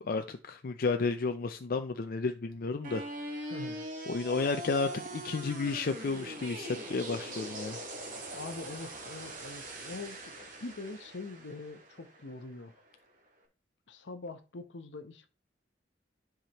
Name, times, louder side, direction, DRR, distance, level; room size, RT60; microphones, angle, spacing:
voice 1, 0.0-3.1 3.4-3.5 4.1-7.8, left 4 dB, 55° left, 0.5 m, -32 dB
sound 1, 2.8-12.9, right 1 dB, 50° right, 1.9 m, -42 dB
voice 2, 3.5-3.9 8.3-12.8 13.9-15.3, left 3 dB, 75° left, 0.9 m, -43 dB
10.5 x 4.9 x 3.0 m
head